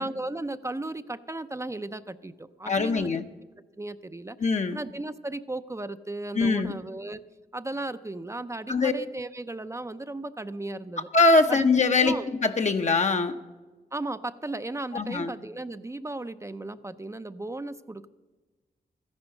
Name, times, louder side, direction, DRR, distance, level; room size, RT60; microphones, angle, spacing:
voice 1, 0.0-3.1 3.8-4.4 4.7-7.2 7.5-11.1 11.5-11.7 12.0-12.3 13.9-18.1, right 2 dB, 15° right, 11 dB, 0.6 m, -35 dB
voice 2, 2.7-3.2 4.4-4.8 6.3-6.8 8.7-8.9 11.1-12.2 12.4-13.4 14.9-15.3, left 3 dB, 45° left, 5 dB, 0.8 m, -22 dB
14.0 x 10.5 x 6.5 m, 1.3 s
cardioid pair, 65°, 17 cm